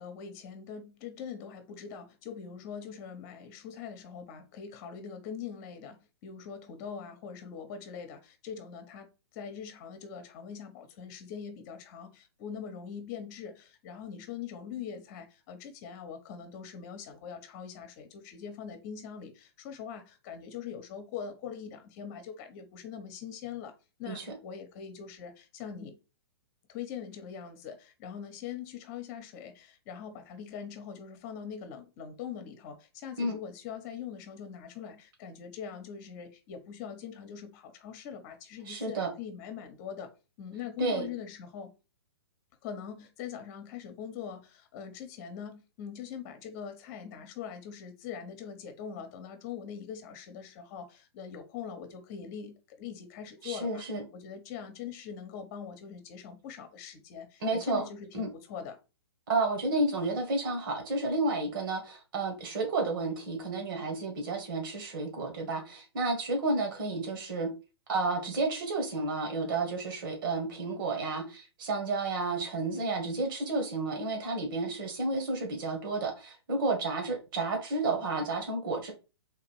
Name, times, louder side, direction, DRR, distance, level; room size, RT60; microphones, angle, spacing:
voice 1, 0.0-23.7 24.0-26.0 26.7-40.1 40.4-41.7 42.6-53.8 54.1-58.8, left 7 dB, 35° left, 1.1 m, -42 dB
voice 2, 38.7-39.1 40.8-41.0 53.4-54.0 57.4-57.9 58.1-58.3 59.3-67.5 67.9-78.9, right 3 dB, 55° right, 1.6 m, -31 dB
3.7 x 2.9 x 4.5 m
hypercardioid pair, 130°, 14 cm